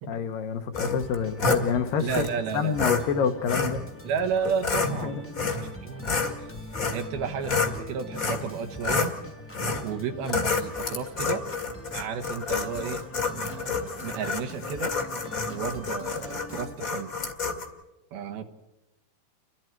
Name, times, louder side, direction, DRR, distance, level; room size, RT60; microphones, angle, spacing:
voice 1, 0.1-2.3 2.5-3.8 4.8-5.2, left 6 dB, 70° left, 7 dB, 2.6 m, -28 dB
sound 1, 0.7-1.6 2.1-2.3 2.8-3.0 3.5-3.8 4.4-4.9 5.3-5.7 6.0-7.8 8.2-8.5 8.8-9.1 9.5-9.9 10.3-17.7, left 4 dB, 35° left, 1.5 m, -28 dB
Organ, 0.7-16.7, equal, 10° left, 0.6 m, -44 dB
voice 2, 2.0-2.9 4.0-6.2 6.9-9.1 9.8-11.4 11.9-13.0 13.3-14.9 15.5-17.1 18.1-18.4, right 6 dB, 75° right, 5 dB, 3.1 m, -32 dB
29.5 x 23.5 x 4.6 m, 1.0 s
omnidirectional pair, 4.5 m